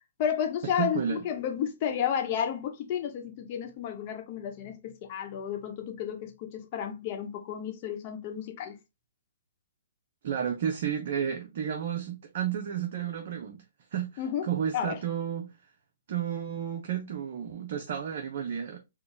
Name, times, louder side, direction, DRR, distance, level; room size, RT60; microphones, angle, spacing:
voice 1, 0.2-8.7 14.2-14.5 14.7-15.0, left 8 dB, 40° left, 1.0 m, -32 dB
voice 2, 0.7-1.2 10.2-13.6 13.9-15.5 16.1-18.8, right 8 dB, 55° right, 0.7 m, -32 dB
4.7 x 2.3 x 3.3 m
hypercardioid pair, 140°, 0 cm